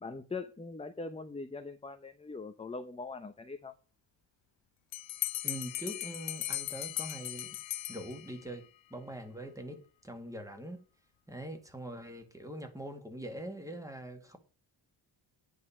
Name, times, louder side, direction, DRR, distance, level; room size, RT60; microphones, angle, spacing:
voice 1, 0.0-3.7, left 3 dB, 15° left, 0.8 m, -42 dB
Bell, 4.9-8.6, left 15 dB, 85° left, 0.6 m, -38 dB
voice 2, 5.4-7.6 7.9-10.8 11.3-14.4, right 1 dB, 5° right, 2.0 m, -43 dB
9.9 x 5.3 x 7.2 m
wide cardioid pair, 130°, 44 cm